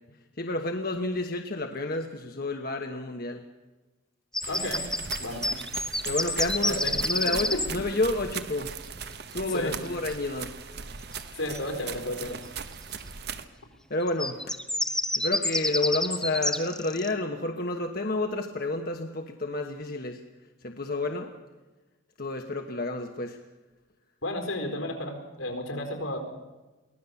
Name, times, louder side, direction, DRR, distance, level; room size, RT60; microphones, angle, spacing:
voice 1, 0.4-3.4 6.0-8.7 9.3-10.5 13.9-14.5 15.2-20.2 20.6-21.3 22.2-23.4, left 2 dB, 45° left, 4 dB, 1.2 m, -30 dB
sound 1, 4.3-7.7 11.5-11.6 14.0-17.1, left 1 dB, 5° left, 0.8 m, -28 dB
sound 2, 4.4-13.4, right 6 dB, 50° right, 1.1 m, -39 dB
voice 2, 4.5-4.9 5.2-5.4 6.7-7.0 7.2-7.6 9.4-9.7 11.4-12.4 24.2-26.2, left 1 dB, 85° left, 4 dB, 4.4 m, -32 dB
23.5 x 17.0 x 7.1 m, 1.2 s
head